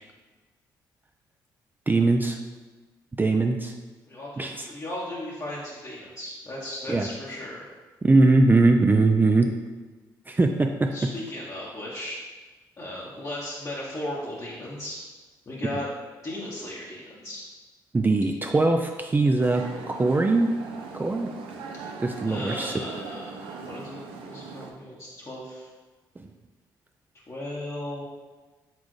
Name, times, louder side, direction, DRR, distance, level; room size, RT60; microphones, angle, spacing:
voice 1, 1.9-2.4 3.2-3.7 4.4-4.7 6.9-7.1 8.0-9.5 10.3-10.9 17.9-20.6 20.9-21.3 22.0-22.7 26.2-26.3, right 2 dB, 20° right, 4 dB, 0.3 m, -21 dB
voice 2, 4.1-7.7 10.9-12.2 12.8-15.0 15.5-15.9 16.2-17.4 21.8-22.0 22.3-25.7 27.3-28.0, left 1 dB, 35° left, -6 dB, 0.9 m, -36 dB
sound 1, 19.4-24.7, right 4 dB, 75° right, 0.5 m, -39 dB
4.1 x 3.6 x 3.1 m, 1.3 s
hypercardioid pair, 55°, 9 cm